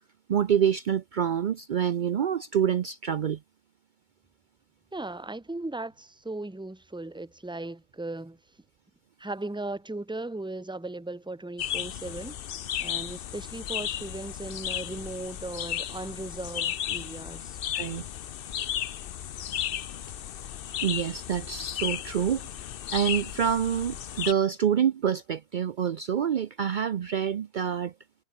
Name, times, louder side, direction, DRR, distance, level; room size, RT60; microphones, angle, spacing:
voice 1, 0.3-3.4 17.7-18.1 20.8-22.4 22.9-27.9, right 8 dB, 55° right, 0.7 m, -27 dB
voice 2, 4.9-8.4 9.2-12.4 12.8-17.6, right 2 dB, 5° right, 1.0 m, -37 dB
sound 1, 11.6-24.3, left 10 dB, 60° left, 0.8 m, -34 dB
omnidirectional pair, 1.1 m